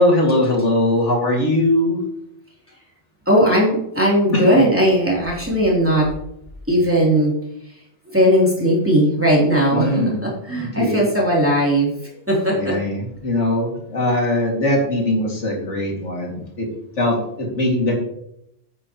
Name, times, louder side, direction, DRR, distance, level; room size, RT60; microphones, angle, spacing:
voice 1, 0.0-2.0 4.3-4.4 9.7-11.0 12.5-16.7 17.0-17.9, left 1 dB, 75° left, -1 dB, 2.6 m, -20 dB
voice 2, 3.3-6.1 6.7-7.3 8.1-11.9 12.3-12.7, equal, 10° right, -4 dB, 3.1 m, -17 dB
10.0 x 9.1 x 3.0 m, 0.75 s
omnidirectional pair, 1.2 m